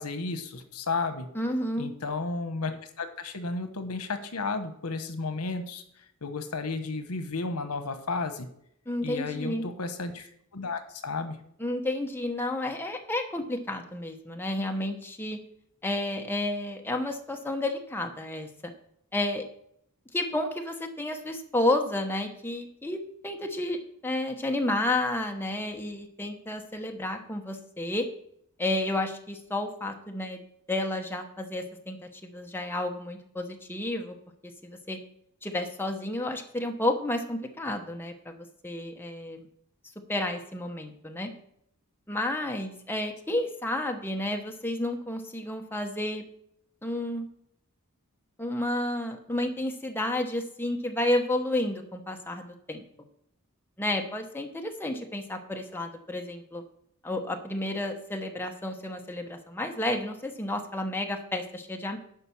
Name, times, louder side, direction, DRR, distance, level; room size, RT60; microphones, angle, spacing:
voice 1, 0.0-1.3 1.8-5.8 6.2-8.5 9.0-11.4, left 3 dB, 85° left, 9 dB, 1.1 m, -33 dB
voice 2, 1.3-1.9 8.9-9.6 11.6-15.4 15.8-18.5 19.1-19.4 20.1-28.1 28.6-30.4 30.7-34.2 34.6-35.0 35.4-39.4 40.1-41.3 42.1-46.2 46.8-47.3 48.4-52.8 53.8-56.6 57.0-62.0, left 1 dB, 10° left, 3 dB, 1.0 m, -31 dB
11.0 x 5.3 x 7.1 m, 0.70 s
head